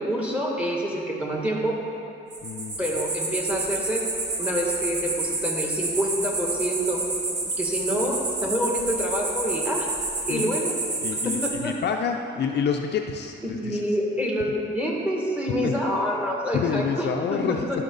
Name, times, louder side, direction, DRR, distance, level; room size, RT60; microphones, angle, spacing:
voice 1, 0.0-1.8 2.8-4.0 4.4-7.1 7.4-9.9 10.3-10.7 11.2-11.7 13.4-17.4 17.7-17.8, equal, 5° right, -2 dB, 2.1 m, -27 dB
sound 1, 2.3-11.5, right 2 dB, 60° right, 1.8 m, -29 dB
voice 2, 2.4-2.8 10.3-10.6 11.0-13.8 15.5-15.8 16.5-17.8, left 7 dB, 60° left, 3 dB, 0.6 m, -28 dB
14.5 x 5.9 x 4.0 m, 2.6 s
cardioid pair, 90°, 20 cm